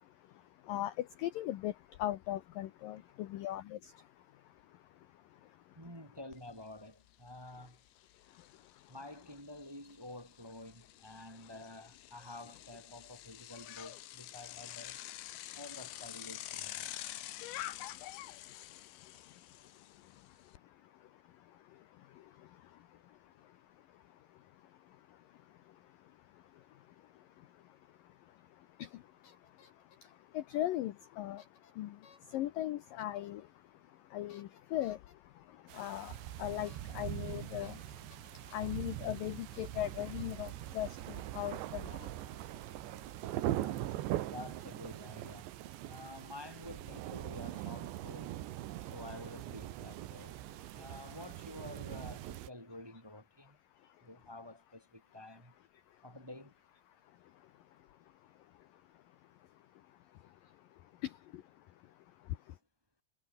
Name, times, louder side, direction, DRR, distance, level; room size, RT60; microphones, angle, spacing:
voice 1, 0.0-5.8 8.3-8.9 17.4-43.3 53.8-54.1 55.9-56.0 57.1-62.6, left 13 dB, 75° left, 2.1 m, -43 dB
voice 2, 5.8-7.8 8.9-15.0 15.5-16.9 43.6-43.9 44.2-45.5 45.8-48.4 48.9-50.4 50.7-53.6 54.0-55.5 56.0-56.5, left 1 dB, 5° right, 2.5 m, -49 dB
Bicycle, 6.3-6.4 6.8-20.6, left 15 dB, 90° left, 3.6 m, -48 dB
sound 1, 28.9-29.0 29.2-30.2 31.4-31.7 32.0-32.4 33.0-33.3 34.3-35.1 36.7-36.8 37.1-37.2 37.6-38.8 39.5-39.9 40.2-40.5 41.0-41.6, left 5 dB, 60° left, 7.3 m, -64 dB
sound 2, 35.7-52.5, right 14 dB, 80° right, 3.6 m, -42 dB
omnidirectional pair, 5.1 m